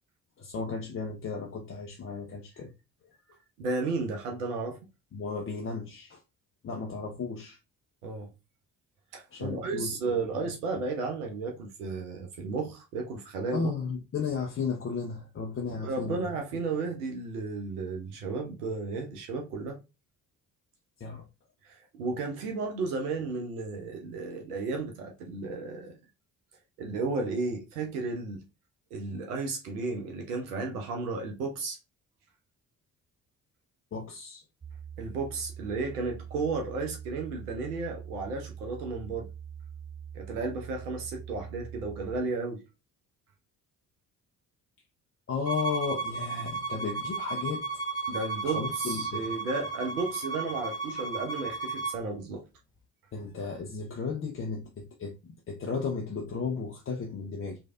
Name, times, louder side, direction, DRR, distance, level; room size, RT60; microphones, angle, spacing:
voice 1, 0.4-2.7 3.3-3.4 5.1-6.2 6.6-7.6 9.3-10.1 10.4-10.5 13.5-16.2 21.0-21.2 33.9-34.4 45.3-47.6 48.4-49.2 53.1-57.6, left 5 dB, 30° left, 0.6 m, -34 dB
voice 2, 3.6-4.8 8.0-8.3 9.1-13.7 15.7-19.8 21.6-26.0 26.8-28.4 28.9-31.8 35.0-39.3 40.1-42.6 48.1-52.4, right 3 dB, 85° right, 0.6 m, -33 dB
sound 1, 34.6-42.2, right 8 dB, 15° right, 0.3 m, -43 dB
Bowed string instrument, 45.4-52.0, right 4 dB, 10° left, 1.2 m, -34 dB
3.1 x 2.5 x 2.3 m
hypercardioid pair, 45°, 44 cm